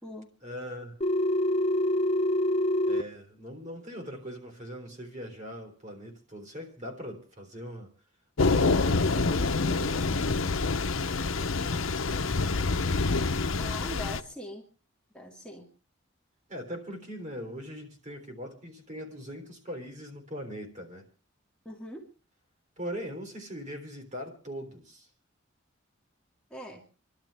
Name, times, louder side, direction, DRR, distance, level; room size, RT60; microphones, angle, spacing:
voice 1, 0.4-1.0 2.9-7.9 8.4-10.4 10.9-12.7 16.5-21.1 22.8-25.1, equal, 35° right, 3.5 m, -41 dB
Telephone, 1.0-3.0, left 1 dB, 30° left, 1.0 m, -25 dB
Thunder / Rain, 8.4-14.2, left 3 dB, 90° left, 0.9 m, -26 dB
voice 2, 13.6-14.7 15.1-15.7 21.7-22.1 26.5-26.9, left 1 dB, 5° left, 2.0 m, -41 dB
28.0 x 12.0 x 3.5 m
head